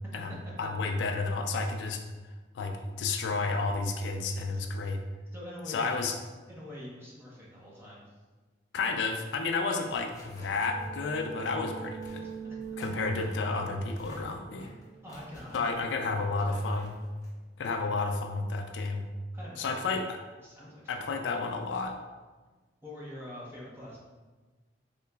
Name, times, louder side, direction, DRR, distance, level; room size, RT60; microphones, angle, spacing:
voice 1, 0.6-2.0 2.5-5.0 5.7-6.2 8.7-12.3 12.8-14.7 15.5-17.0 17.6-19.1 19.6-20.2 20.9-22.0, left 3 dB, 85° left, 5 dB, 0.3 m, -31 dB
voice 2, 5.3-6.0 6.5-8.0 12.2-12.8 15.0-15.9 16.2-16.8 19.3-19.9 20.4-21.1 22.8-24.0, left 1 dB, 15° right, -6 dB, 0.8 m, -45 dB
sound 1, 9.4-18.6, left 1 dB, 20° left, 0.7 m, -54 dB
sound 2, 10.1-15.6, right 6 dB, 50° right, 1.4 m, -43 dB
3.8 x 2.9 x 2.3 m, 1.3 s
head